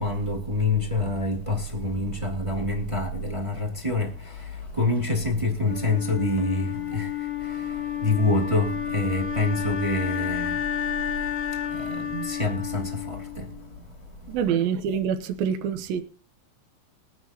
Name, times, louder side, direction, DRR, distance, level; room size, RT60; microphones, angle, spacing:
voice 1, 0.0-7.1 7.4-10.6 11.7-13.5, left 2 dB, 15° right, 1.3 m, -27 dB
Wind instrument woodwind instrument, 5.6-13.7, left 9 dB, 30° left, 1.9 m, -31 dB
voice 2, 14.3-16.0, right 8 dB, 75° right, 2.6 m, -26 dB
22.0 x 9.4 x 2.9 m
omnidirectional pair, 4.7 m